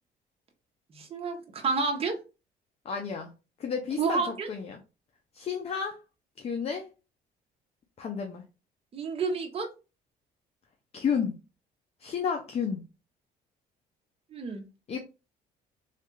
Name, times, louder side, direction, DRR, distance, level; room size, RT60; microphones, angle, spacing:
voice 1, 0.9-2.2 4.0-4.5 8.9-9.7 14.3-14.6, right 4 dB, 35° right, 0.7 m, -30 dB
voice 2, 2.8-3.3 3.6-4.8 5.3-6.0 6.4-6.9 8.0-8.4 10.9-11.4 12.0-12.8 14.9-15.0, left 6 dB, 35° left, 0.6 m, -31 dB
3.2 x 2.4 x 3.0 m
cardioid pair, 110°, 17 cm